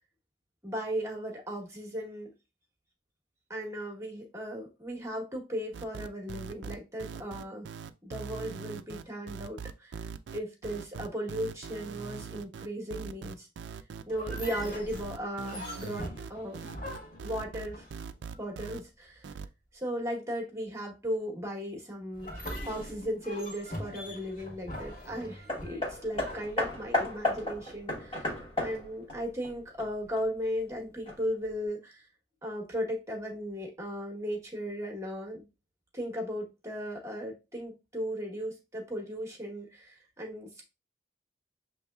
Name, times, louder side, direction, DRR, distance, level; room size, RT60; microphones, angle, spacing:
voice 1, 0.6-2.3 3.5-7.7 8.0-13.5 14.1-16.8 17.2-17.9 18.4-19.3 19.7-32.1 32.4-35.5 35.9-40.6, equal, 15° right, 1.1 m, -36 dB
sound 1, 5.7-18.8 19.2-19.5, right 6 dB, 80° right, 0.4 m, -41 dB
sound 2, 14.1-18.4 22.1-27.2, left 1 dB, 50° left, 1.7 m, -42 dB
Hammer, 25.5-30.2 31.1-31.2, left 2 dB, 30° left, 1.2 m, -33 dB
6.9 x 3.0 x 2.3 m
head